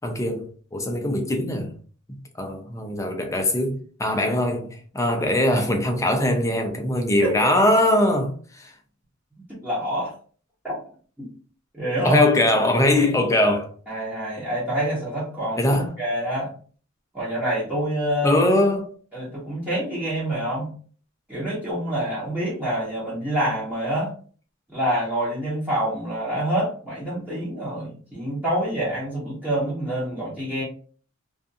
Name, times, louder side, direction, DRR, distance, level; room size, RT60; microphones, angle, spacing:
voice 1, 0.0-1.7 2.1-8.7 12.0-13.7 15.6-15.9 18.2-18.9, left 1 dB, 15° left, 0.5 m, -22 dB
voice 2, 9.5-10.1 10.6-10.8 11.7-12.3 13.9-16.5 17.1-18.4 19.1-20.7 21.3-24.1 24.7-30.6, right 1 dB, 10° right, 0.9 m, -26 dB
2.4 x 2.4 x 2.6 m
head